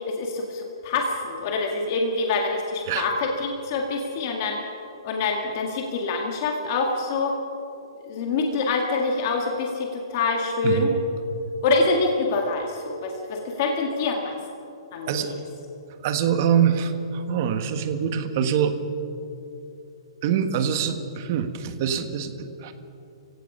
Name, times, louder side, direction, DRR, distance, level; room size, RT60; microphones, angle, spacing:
voice 1, 0.0-4.6 5.0-7.3 8.1-10.9 11.6-14.3 14.9-15.3, left 3 dB, 30° left, 1 dB, 1.9 m, -25 dB
voice 2, 16.0-18.8 20.2-22.7, right 8 dB, 35° right, 8 dB, 1.4 m, -24 dB
30.0 x 16.5 x 5.5 m, 2.8 s
hypercardioid pair, 170°, 3 cm